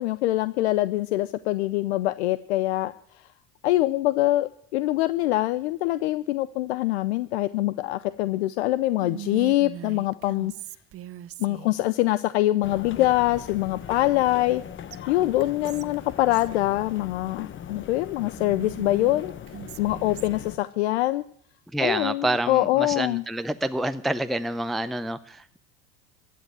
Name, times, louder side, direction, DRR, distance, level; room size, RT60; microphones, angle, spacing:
voice 1, 0.0-3.3 3.6-10.5 11.4-14.6 15.1-19.3 19.8-21.2 21.8-23.2, left 16 dB, 80° left, 15 dB, 0.6 m, -24 dB
Whispering, 9.0-11.8 13.9-14.6 14.9-15.0 15.4-16.5 18.4-20.5, right 11 dB, 45° right, 0.9 m, -41 dB
sound 1, 12.6-20.6, left 9 dB, 35° left, 1.1 m, -40 dB
voice 2, 21.7-25.6, right 1 dB, ahead, 10 dB, 0.6 m, -28 dB
15.0 x 9.4 x 9.0 m, 0.62 s
hypercardioid pair, 85°, 33 cm